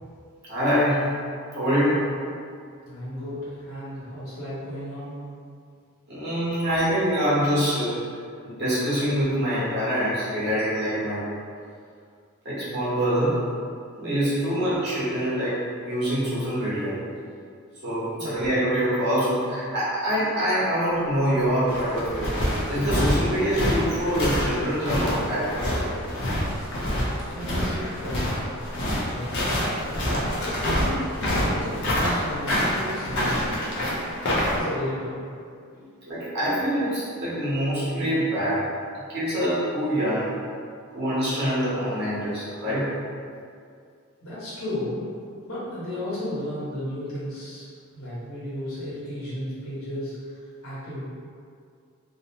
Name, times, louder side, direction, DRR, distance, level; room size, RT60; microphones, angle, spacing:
voice 1, 0.5-1.0 1.5-2.0 6.1-7.9 8.4-11.2 12.4-13.4 13.9-15.6 15.8-17.0 17.8-22.3 22.7-25.5 36.1-38.6 39.1-40.3 40.9-42.9, equal, 50° right, -10 dB, 1.0 m, -25 dB
voice 2, 2.8-5.2 14.3-14.7 18.2-18.5 27.2-28.5 29.0-29.4 30.4-33.4 33.7-34.2 34.5-35.3 35.7-35.9 44.2-45.0 45.4-47.7 47.9-50.1 50.6-51.0, left 1 dB, 80° left, -10 dB, 1.1 m, -34 dB
sound 1, 21.4-34.6, equal, 50° left, 0.6 m, -26 dB
2.7 x 2.0 x 2.8 m, 2.3 s
head